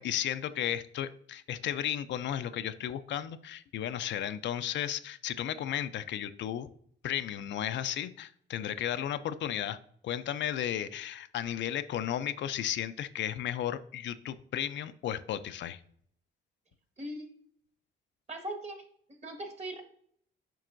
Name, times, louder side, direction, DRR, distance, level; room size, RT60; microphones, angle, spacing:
voice 1, 0.0-6.7 7.0-9.8 10.0-15.8, left 10 dB, 65° left, 11 dB, 0.4 m, -34 dB
voice 2, 17.0-17.3 18.3-18.8 19.2-19.8, right 1 dB, 35° right, 4 dB, 1.5 m, -39 dB
7.4 x 5.4 x 2.5 m, 0.64 s
cardioid pair, 90°, 20 cm